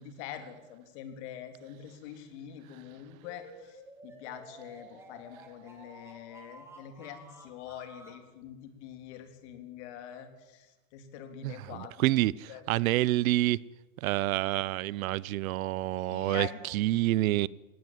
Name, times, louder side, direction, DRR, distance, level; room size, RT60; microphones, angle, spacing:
voice 1, 0.0-12.6 15.9-16.6, left 10 dB, 55° left, 3.4 m, -45 dB
sound 1, 3.2-8.2, right 1 dB, 5° right, 3.3 m, -52 dB
voice 2, 11.4-13.6 14.0-17.5, right 16 dB, 85° right, 0.8 m, -28 dB
20.0 x 17.5 x 9.4 m
supercardioid pair, 165°, 41 cm